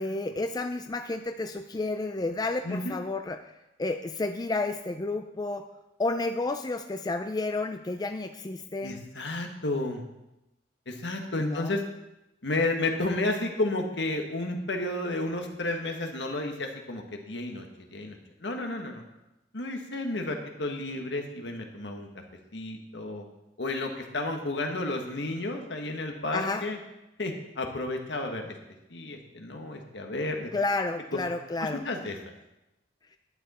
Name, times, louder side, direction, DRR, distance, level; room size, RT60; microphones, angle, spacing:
voice 1, 0.0-3.4 3.8-5.7 6.0-9.0 11.4-11.8 26.3-26.7 30.5-31.9, left 2 dB, 20° left, 7 dB, 0.4 m, -31 dB
voice 2, 2.6-3.0 8.8-10.0 10.9-11.8 12.4-17.7 17.9-19.0 19.5-22.1 22.5-23.2 23.6-26.8 27.2-28.5 28.9-30.5 31.1-31.2 31.6-32.2, left 2 dB, 75° left, 3 dB, 1.5 m, -32 dB
11.0 x 9.4 x 4.3 m, 0.94 s
head